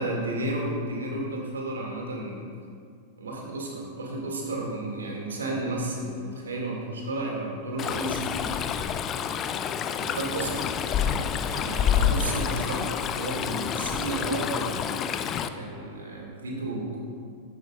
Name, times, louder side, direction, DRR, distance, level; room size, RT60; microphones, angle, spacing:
voice 1, 0.0-2.4 3.2-8.6 9.9-10.7 11.0-17.0, right 1 dB, 70° right, -1 dB, 2.2 m, -32 dB
Stream, 7.8-15.5, left 8 dB, 30° left, 0.4 m, -28 dB
14.0 x 11.0 x 2.5 m, 2.2 s
figure-of-eight pair, 90°, 0 cm